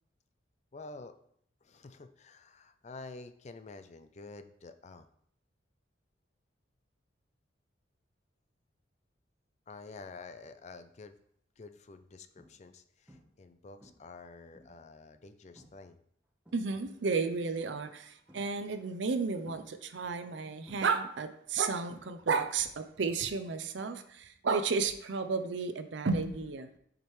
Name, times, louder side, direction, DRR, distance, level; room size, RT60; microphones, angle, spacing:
voice 1, 0.7-1.1 1.6-5.1 9.7-11.2 11.6-16.0, left 3 dB, 35° left, 10 dB, 0.4 m, -49 dB
sound 1, 10.7-11.1 11.6-11.8 12.4-12.8 13.1-13.5 13.8-14.9 15.6-15.9 16.2-17.1 18.3-18.8 19.4-20.3 20.7-22.6 22.8-23.2 25.3-25.4, equal, 5° right, 1.1 m, -59 dB
voice 2, 16.5-26.8, right 4 dB, 70° right, 10 dB, 0.6 m, -32 dB
7.3 x 5.1 x 3.2 m, 0.68 s
head